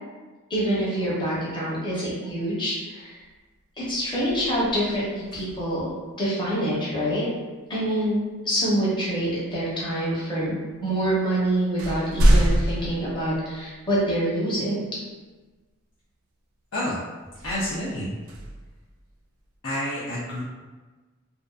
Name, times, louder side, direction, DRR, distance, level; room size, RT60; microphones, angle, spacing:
voice 1, 0.5-3.2 3.8-5.9 6.2-7.3 7.7-10.6 10.8-15.0, right 1 dB, 20° left, -8 dB, 0.8 m, -26 dB
sound 1, 3.2-3.5 3.8-5.9 8.1-8.2 9.0-9.8 10.7-10.8 11.2-14.0 14.6-14.7 17.3-19.4, equal, 85° right, 0.4 m, -26 dB
voice 2, 17.4-18.1 19.6-20.4, left 1 dB, 65° left, -9 dB, 0.5 m, -29 dB
2.6 x 2.2 x 2.3 m, 1.3 s
head